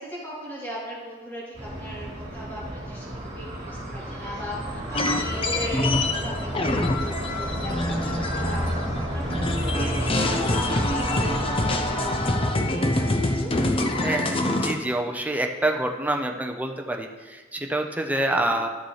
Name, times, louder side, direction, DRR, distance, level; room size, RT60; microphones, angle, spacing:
voice 1, 0.0-8.8 9.1-14.3 18.1-18.5, equal, 10° left, -8 dB, 3.1 m, -38 dB
sound 1, 1.5-12.3, equal, 40° right, 2.2 m, -31 dB
sound 2, 4.9-9.0 9.3-14.7, left 2 dB, 30° left, 0.6 m, -25 dB
voice 2, 14.0-18.7, right 1 dB, 10° right, 3 dB, 0.7 m, -27 dB
12.5 x 6.6 x 3.2 m, 1.3 s
head